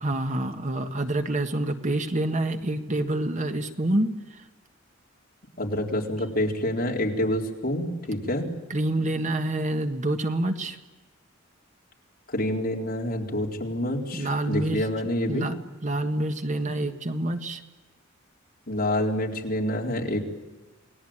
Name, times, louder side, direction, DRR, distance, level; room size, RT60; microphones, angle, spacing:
voice 1, 0.0-4.4 8.7-10.8 14.1-14.8 15.3-15.5 15.8-17.6, right 1 dB, 40° right, 7 dB, 1.6 m, -27 dB
voice 2, 5.6-8.4 12.3-15.5 18.7-20.2, left 1 dB, 50° left, 0 dB, 4.2 m, -27 dB
28.5 x 19.5 x 8.9 m, 1.2 s
head